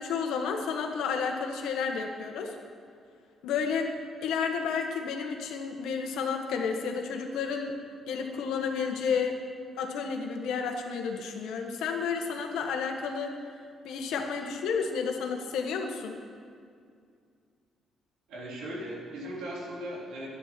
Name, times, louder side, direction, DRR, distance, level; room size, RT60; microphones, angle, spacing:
voice 1, 0.0-2.6 3.4-3.9 4.2-7.7 8.1-9.4 9.8-13.3 13.8-16.2, left 6 dB, 85° left, 3 dB, 1.4 m, -31 dB
voice 2, 18.3-20.3, right 1 dB, 90° right, -4 dB, 3.4 m, -38 dB
12.0 x 9.7 x 6.0 m, 2.2 s
cardioid pair, 90°, 0 cm